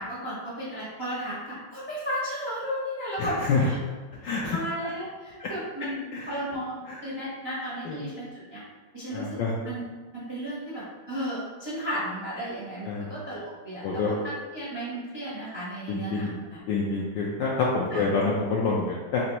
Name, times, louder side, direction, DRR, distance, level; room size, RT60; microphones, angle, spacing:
voice 1, 0.0-3.8 4.5-8.6 8.9-9.4 9.6-9.8 10.1-16.6 17.9-18.1, equal, 30° right, -9 dB, 0.4 m, -34 dB
voice 2, 3.2-3.7 4.2-4.6 5.4-5.5 6.1-6.3 6.9-7.0 7.8-8.0 9.1-9.6 12.9-13.1 13.8-14.1 15.9-16.3 16.7-19.2, left 4 dB, 75° left, -4 dB, 1.0 m, -27 dB
4.2 x 3.4 x 2.9 m, 1.4 s
omnidirectional pair, 2.4 m